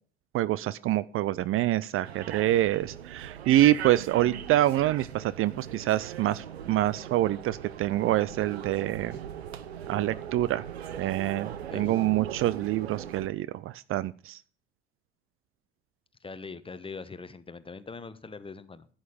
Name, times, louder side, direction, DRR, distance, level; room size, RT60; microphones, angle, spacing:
voice 1, 0.3-9.2 9.9-10.6 11.0-14.4, right 14 dB, 45° right, 19 dB, 0.5 m, -26 dB
sound 1, 2.0-13.3, right 9 dB, 90° right, 0.8 m, -40 dB
voice 2, 11.6-12.0 16.2-18.9, left 4 dB, 15° left, 14 dB, 1.1 m, -42 dB
11.0 x 8.8 x 5.1 m, 0.42 s
hypercardioid pair, 70°, 31 cm